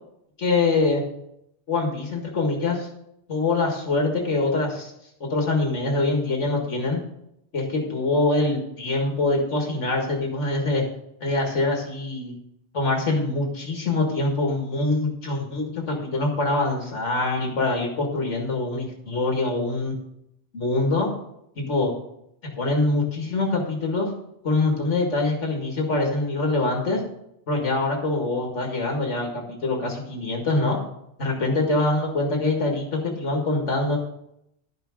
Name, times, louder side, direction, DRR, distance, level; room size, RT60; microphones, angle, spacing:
voice 1, 0.4-1.0 1.7-2.9 3.3-4.9 5.2-7.0 7.5-10.8 11.2-12.3 12.7-20.0 20.5-21.1 21.6-21.9 22.6-24.1 24.4-27.0 27.5-30.8 31.2-34.0, left 2 dB, 85° left, 0 dB, 2.2 m, -24 dB
12.0 x 5.9 x 6.3 m, 0.78 s
omnidirectional pair, 1.2 m